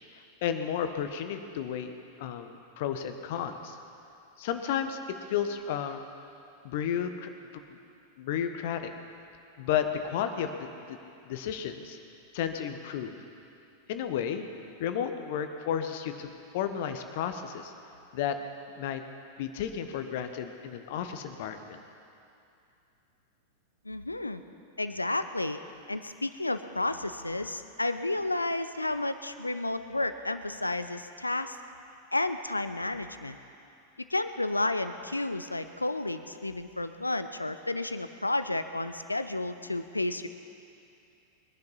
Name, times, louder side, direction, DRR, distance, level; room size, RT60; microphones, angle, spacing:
voice 1, 0.4-1.9 2.2-3.8 4.4-5.0 5.3-6.0 6.6-7.3 7.7-7.8 8.2-8.8 9.6-11.0 11.2-12.0 12.3-13.1 13.9-14.5 14.8-17.7 18.1-18.4 18.8-19.0 19.4-21.8, left 8 dB, 50° left, 8 dB, 1.2 m, -32 dB
voice 2, 23.8-24.4 24.8-25.6 25.9-31.6 32.1-33.4 34.1-40.3, left 2 dB, 85° left, 11 dB, 0.7 m, -31 dB
22.5 x 10.5 x 5.7 m, 2.6 s
figure-of-eight pair, 90°, 0 cm